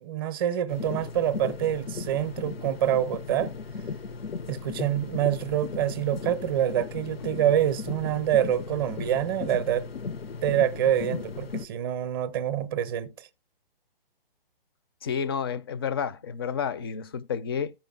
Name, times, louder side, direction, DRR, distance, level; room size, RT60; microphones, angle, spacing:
voice 1, 0.0-3.5 4.5-9.9 10.4-13.3, right 11 dB, 25° right, 0.6 m, -26 dB
sound 1, 0.7-11.7, left 5 dB, 85° left, 0.7 m, -36 dB
voice 2, 15.0-17.7, left 7 dB, 25° left, 0.4 m, -30 dB
14.5 x 5.1 x 2.3 m
hypercardioid pair, 145°, 29 cm